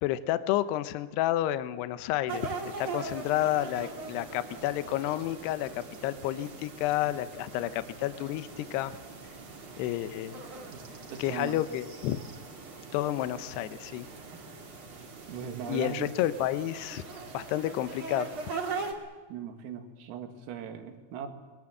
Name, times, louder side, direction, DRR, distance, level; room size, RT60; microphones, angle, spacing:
voice 1, 0.0-8.9 9.8-10.4 11.2-12.2 12.9-14.1 15.7-17.0 17.3-18.3, left 13 dB, 85° left, 12 dB, 2.4 m, -30 dB
sound 1, 2.3-18.9, right 4 dB, 35° right, 2.3 m, -41 dB
voice 2, 10.7-11.6 14.3-14.5 15.3-16.1 19.3-21.3, right 8 dB, 75° right, 6 dB, 4.5 m, -39 dB
26.5 x 21.5 x 7.8 m, 1.3 s
omnidirectional pair, 6.0 m